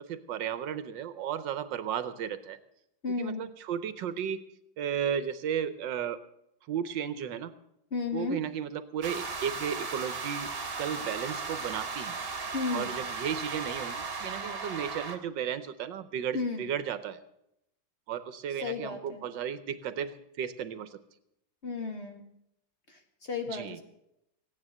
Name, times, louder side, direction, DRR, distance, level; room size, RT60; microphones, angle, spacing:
voice 1, 0.0-2.6 3.2-4.4 4.8-6.2 6.7-7.5 8.1-10.5 10.8-12.2 12.7-17.2 18.1-21.0 23.5-23.8, right 8 dB, 70° right, 13 dB, 1.4 m, -34 dB
voice 2, 3.0-3.4 7.9-8.5 12.5-12.9 16.3-16.7 18.6-19.2 21.6-22.2 22.9-23.0 23.3-23.8, left 4 dB, 35° left, 4 dB, 1.8 m, -33 dB
sound 1, 9.0-15.2, right 4 dB, 35° right, 1.6 m, -36 dB
15.5 x 9.9 x 7.7 m, 0.79 s
omnidirectional pair, 2.1 m